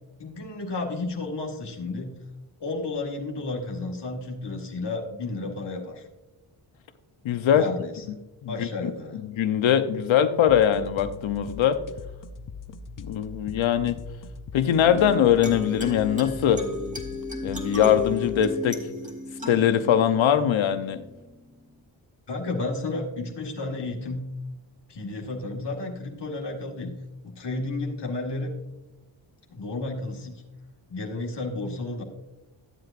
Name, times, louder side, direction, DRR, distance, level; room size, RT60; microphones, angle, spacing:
voice 1, 0.2-2.1 2.6-6.1 7.5-8.1 8.5-9.2 22.3-24.3 24.9-26.9 27.2-28.5 29.5-30.4 30.9-32.0, left 2 dB, 60° left, 0 dB, 1.8 m, -32 dB
voice 2, 7.2-7.7 8.1-8.2 8.4-8.9 9.2-11.8 13.0-14.0 14.5-16.6 17.4-18.8 19.5-21.0, left 9 dB, 75° left, 10 dB, 0.9 m, -22 dB
sound 1, 10.5-18.5, left 4 dB, 40° left, 0.7 m, -41 dB
sound 2, 14.8-21.8, left 2 dB, 15° right, 2.0 m, -35 dB
13.5 x 7.8 x 2.5 m, 1.0 s
cardioid pair, 65°, 47 cm